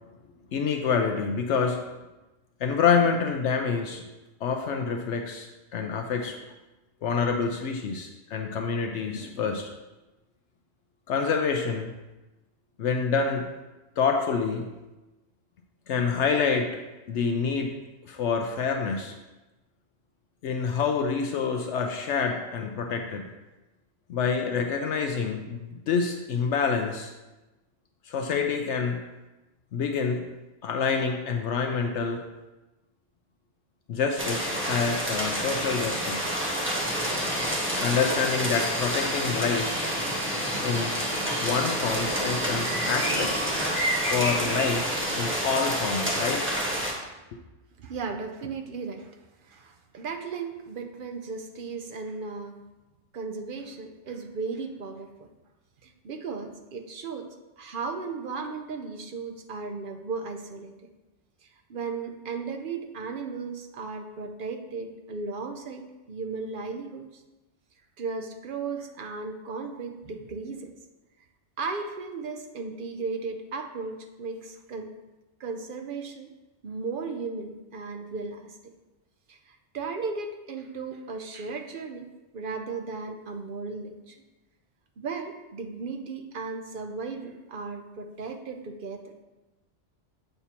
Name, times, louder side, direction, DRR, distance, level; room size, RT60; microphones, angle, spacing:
voice 1, 0.5-1.8 2.6-4.0 4.4-6.4 7.0-9.7 11.1-11.9 12.8-13.5 14.0-14.7 15.9-16.8 17.1-17.8 18.0-19.2 20.4-23.3 24.1-27.1 28.1-29.0 29.7-30.2 30.6-32.2 33.9-36.3 37.8-39.7 40.6-41.0 41.4-43.3 44.1-44.9 45.2-46.5, left 5 dB, 75° left, 4 dB, 0.9 m, -27 dB
sound 1, 34.2-46.9, equal, 10° right, 1.1 m, -28 dB
Subway metro underground, 36.8-43.6, equal, 35° left, 2.2 m, -36 dB
voice 2, 47.8-49.2 49.4-52.6 53.1-55.1 55.8-57.3 57.6-60.7 61.7-67.1 68.0-70.7 71.6-74.9 75.4-76.3 76.6-78.6 79.3-82.1 82.3-84.2 85.0-89.2, right 4 dB, 50° right, 5 dB, 0.8 m, -35 dB
8.2 x 6.7 x 2.9 m, 1.1 s
omnidirectional pair, 1.2 m